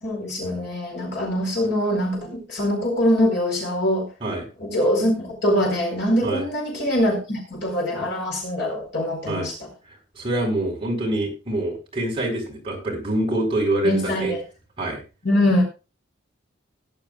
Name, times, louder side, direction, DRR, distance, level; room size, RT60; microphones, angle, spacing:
voice 1, 0.0-4.1 4.6-9.5 13.8-14.4 15.2-15.6, equal, 55° left, 0 dB, 4.4 m, -23 dB
voice 2, 10.1-14.3 14.8-15.0, right 1 dB, 25° right, -2 dB, 4.5 m, -25 dB
17.5 x 11.0 x 2.4 m, 0.30 s
head